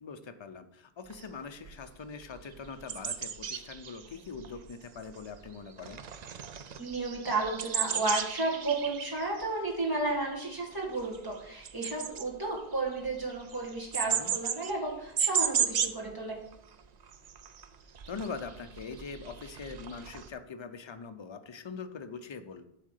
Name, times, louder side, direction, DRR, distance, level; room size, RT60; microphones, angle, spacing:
voice 1, 0.0-6.0 14.1-14.3 18.1-22.6, left 5 dB, 40° left, 9 dB, 0.4 m, -42 dB
sound 1, 1.1-1.3 1.6-1.8 2.2-5.5 5.8-16.1 16.4-16.5 16.8-20.3, right 8 dB, 55° right, 0.5 m, -35 dB
voice 2, 6.8-16.4, right 2 dB, 20° right, -3 dB, 1.9 m, -33 dB
7.6 x 3.7 x 6.5 m, 0.76 s
omnidirectional pair, 1.0 m